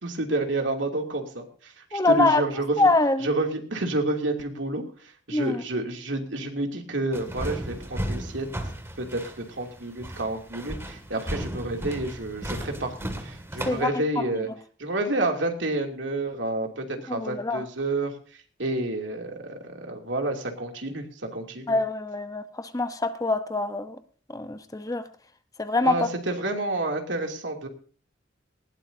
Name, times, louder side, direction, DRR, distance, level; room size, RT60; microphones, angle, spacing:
voice 1, 0.0-2.8 3.2-4.8 5.3-8.5 9.0-14.5 14.8-18.1 18.6-21.8 25.8-27.7, right 2 dB, 80° right, 2.8 m, -29 dB
voice 2, 1.9-2.4 2.8-3.3 5.3-5.6 13.7-14.5 17.1-17.6 21.7-24.0 24.3-25.1 25.6-26.1, left 2 dB, 20° left, 0.9 m, -25 dB
sound 1, 7.1-13.8, equal, 15° right, 2.2 m, -35 dB
19.5 x 17.0 x 2.7 m
head